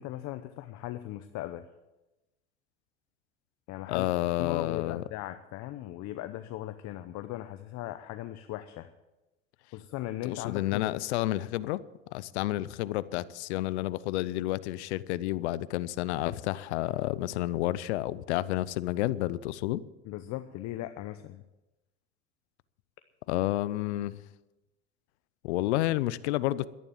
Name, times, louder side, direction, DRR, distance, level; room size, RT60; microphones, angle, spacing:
voice 1, 0.0-1.7 3.7-4.1 4.4-8.9 9.7-11.0 20.0-21.4, left 14 dB, 55° left, 0.8 m, -38 dB
voice 2, 3.9-5.0 10.2-11.8 12.1-19.8 23.3-24.2 25.4-26.7, left 16 dB, 80° left, 0.7 m, -30 dB
12.0 x 10.5 x 7.3 m
supercardioid pair, 90°, 33 cm